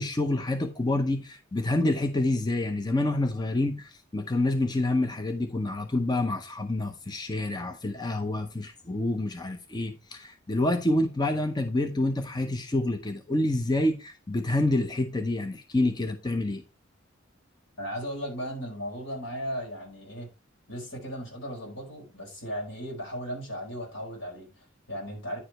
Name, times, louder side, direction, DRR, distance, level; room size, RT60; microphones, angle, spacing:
voice 1, 0.0-16.6, left 2 dB, 20° left, 0.7 m, -27 dB
voice 2, 17.8-20.3 20.7-25.4, equal, 75° left, 5.0 m, -36 dB
9.9 x 4.9 x 4.3 m
head